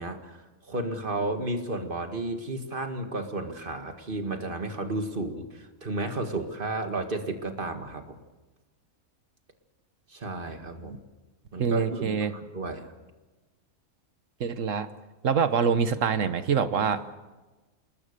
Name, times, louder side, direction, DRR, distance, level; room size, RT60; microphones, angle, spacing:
voice 1, 0.0-8.2 10.1-11.0 11.5-12.9, right 2 dB, 35° right, 6 dB, 2.0 m, -33 dB
voice 2, 11.6-12.3 14.4-14.9 15.2-17.2, right 6 dB, 60° right, 11 dB, 1.5 m, -25 dB
27.5 x 20.5 x 6.8 m, 1.2 s
omnidirectional pair, 1.5 m